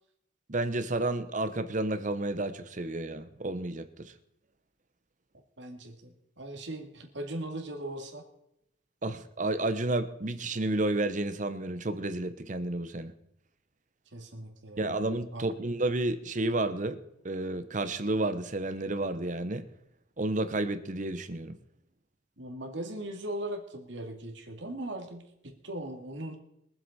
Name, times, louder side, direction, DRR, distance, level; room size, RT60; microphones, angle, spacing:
voice 1, 0.5-4.1 9.0-13.1 14.8-17.0 17.2-19.6 20.2-21.6, right 2 dB, 40° right, 0.8 m, -31 dB
voice 2, 5.6-8.3 9.1-9.2 14.1-14.9 15.3-15.4 22.4-26.4, right 1 dB, 75° right, 2.2 m, -39 dB
23.0 x 7.8 x 4.2 m
head